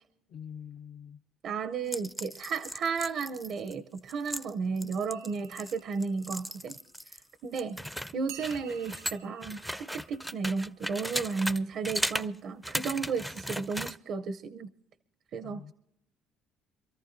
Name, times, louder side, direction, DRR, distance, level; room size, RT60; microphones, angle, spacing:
voice 1, 0.3-1.2 15.4-15.7, left 8 dB, 60° left, 0.7 m, -45 dB
voice 2, 1.4-6.8 7.1-7.8 8.1-14.7 15.3-15.6, right 5 dB, 60° right, 0.6 m, -33 dB
sound 1, 1.9-7.2 7.6-11.6 11.8-12.3 12.6-14.0, equal, ahead, 0.5 m, -37 dB
sound 2, 5.1-7.6 8.3-12.2, right 10 dB, 90° right, 1.3 m, -53 dB
26.5 x 14.0 x 2.6 m
cardioid pair, 100°, 0 cm